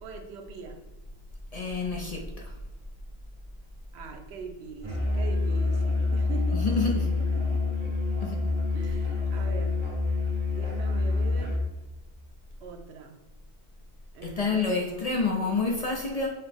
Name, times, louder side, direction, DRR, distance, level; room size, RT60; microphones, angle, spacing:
voice 1, 0.0-0.8 3.9-7.9 8.7-9.8 10.5-11.6 12.6-13.2 14.1-15.6, right 3 dB, 85° right, 4 dB, 0.9 m, -42 dB
voice 2, 1.5-2.5 6.5-6.9 8.2-8.4 14.2-16.3, left 4 dB, 50° left, 0 dB, 0.5 m, -28 dB
Musical instrument, 4.8-11.7, left 3 dB, 30° right, 0.8 m, -27 dB
5.5 x 2.0 x 3.4 m, 1.0 s
omnidirectional pair, 1.1 m